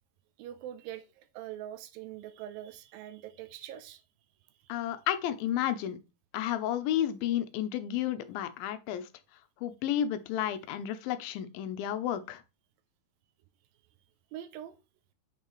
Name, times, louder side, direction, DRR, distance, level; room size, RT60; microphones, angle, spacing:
voice 1, 0.4-4.0 14.3-14.8, right 12 dB, 85° right, 2.4 m, -43 dB
voice 2, 4.7-6.0 6.3-9.1 9.6-12.4, left 11 dB, 85° left, 2.5 m, -32 dB
6.8 x 5.6 x 3.1 m
omnidirectional pair, 4.2 m